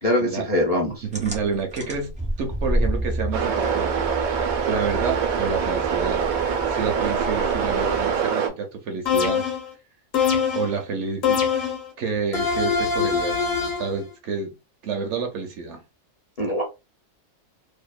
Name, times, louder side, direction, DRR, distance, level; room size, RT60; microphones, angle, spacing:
voice 1, 0.0-1.0 16.4-16.6, left 1 dB, 40° left, 0.5 m, -23 dB
voice 2, 1.0-6.2 6.7-9.4 10.5-11.4 12.0-13.5 13.8-14.5 14.8-15.8, right 5 dB, 65° right, 0.8 m, -29 dB
sound 1, 1.1-8.3, right 1 dB, 10° right, 0.4 m, -30 dB
sound 2, 3.3-8.5, right 7 dB, 85° right, 1.1 m, -24 dB
sound 3, 9.1-9.7 10.1-10.8 11.2-11.9 12.3-13.9, left 6 dB, 55° left, 0.9 m, -23 dB
2.7 x 2.1 x 2.2 m
omnidirectional pair, 1.4 m